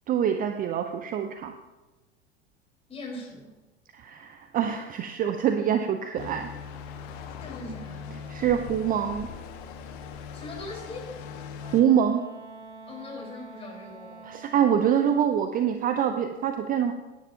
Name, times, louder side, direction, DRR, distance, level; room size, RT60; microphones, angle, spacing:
voice 1, 0.1-1.5 3.9-6.5 8.3-9.3 11.7-12.3 14.2-16.9, right 9 dB, 25° right, 7 dB, 0.7 m, -25 dB
voice 2, 2.9-3.5 7.4-8.2 10.3-11.2 12.9-14.3, left 2 dB, 15° left, -2 dB, 4.7 m, -40 dB
sound 1, 6.2-11.8, left 6 dB, 50° left, 1.5 m, -40 dB
Wind instrument woodwind instrument, 11.6-15.3, right 3 dB, 90° right, 1.2 m, -46 dB
17.0 x 10.0 x 2.9 m, 1.1 s
figure-of-eight pair, 85°, 34 cm